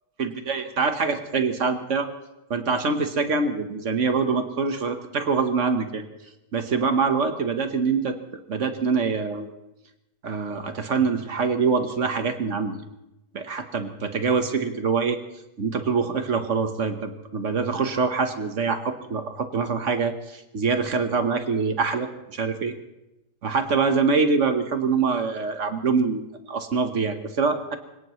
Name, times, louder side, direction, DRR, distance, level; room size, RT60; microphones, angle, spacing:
voice 1, 0.2-2.1 2.5-6.0 6.5-8.1 8.5-9.5 10.2-12.8 13.3-15.2 15.6-22.7 23.4-27.8, right 5 dB, 50° right, 7 dB, 1.5 m, -24 dB
26.5 x 17.5 x 3.2 m, 0.91 s
omnidirectional pair, 1.8 m